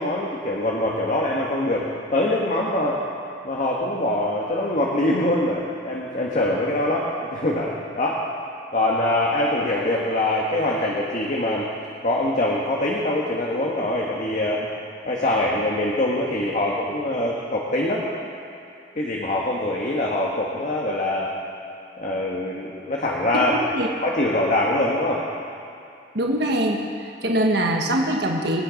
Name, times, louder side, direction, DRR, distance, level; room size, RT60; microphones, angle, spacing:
voice 1, 0.0-3.0 3.4-8.2 8.7-11.7 12.0-14.7 15.0-18.0 18.9-21.3 22.0-23.8 24.0-25.2, left 1 dB, 45° left, -3 dB, 1.5 m, -23 dB
voice 2, 26.1-28.6, right 1 dB, 65° right, 1 dB, 1.4 m, -23 dB
25.0 x 9.3 x 5.2 m, 2.5 s
head